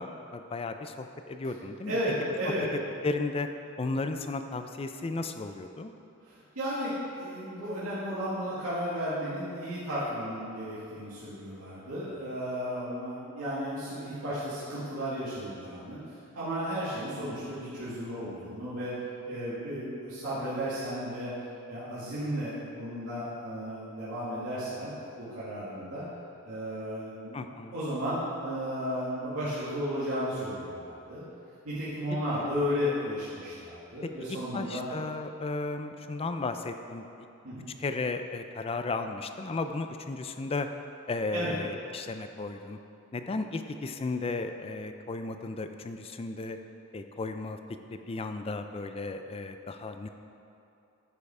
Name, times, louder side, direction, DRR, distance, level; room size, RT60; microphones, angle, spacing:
voice 1, 0.0-2.0 3.0-3.5 3.8-5.9 27.3-27.7 34.5-37.1 37.8-40.7 41.1-42.8 43.1-46.6 46.9-47.6 47.9-50.1, left 3 dB, 25° left, 7 dB, 0.4 m, -34 dB
voice 2, 1.9-2.7 6.2-18.9 19.2-21.3 21.7-24.9 25.2-26.1 26.4-27.4 27.7-31.2 31.6-34.8 37.4-37.7 41.3-41.5, equal, 70° right, -12 dB, 2.2 m, -34 dB
10.5 x 5.6 x 4.9 m, 2.7 s
head